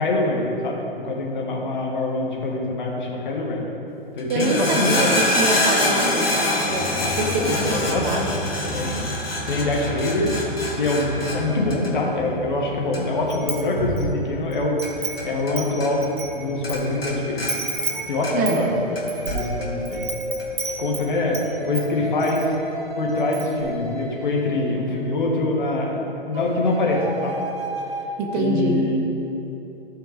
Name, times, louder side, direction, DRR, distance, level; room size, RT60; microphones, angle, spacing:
voice 1, 0.0-3.7 4.1-5.1 6.9-8.3 8.6-9.0 9.5-10.4 10.7-16.1 16.3-17.5 18.1-18.7 19.2-20.0 20.8-22.5 23.0-27.4 28.3-29.0, left 2 dB, 55° left, -1 dB, 1.7 m, -24 dB
sound 1, 4.2-15.5 15.8-16.4 16.6-18.6 18.9-19.7 20.4-20.5, left 1 dB, 80° left, 1.6 m, -26 dB
voice 2, 4.3-8.5 18.4-18.7 28.2-28.8, right 3 dB, 25° right, 2 dB, 0.8 m, -25 dB
Wind chime, 13.3-14.1 14.5-16.8 17.0-17.1 17.5-21.5 21.7-22.5 22.8-22.9 23.2-23.6, right 3 dB, 60° right, 1.8 m, -31 dB
sound 2, 16.3-16.5 17.8-25.2 26.3-28.1, right 1 dB, 75° right, 1.2 m, -33 dB
14.5 x 5.6 x 3.5 m, 3.0 s
figure-of-eight pair, 115°, 29 cm